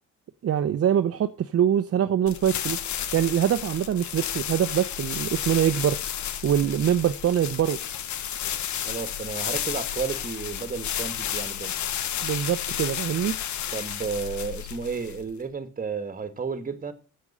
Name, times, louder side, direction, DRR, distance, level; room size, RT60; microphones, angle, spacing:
voice 1, 0.4-2.8 3.1-6.0 6.4-7.8 12.2-13.3, right 9 dB, 50° right, 0.8 m, -24 dB
sound 1, 2.3-15.4, left 10 dB, 70° left, 1.2 m, -32 dB
voice 2, 8.8-11.8 13.7-16.9, right 5 dB, 30° right, 1.9 m, -32 dB
8.3 x 7.9 x 8.7 m
cardioid pair, 90°, 30 cm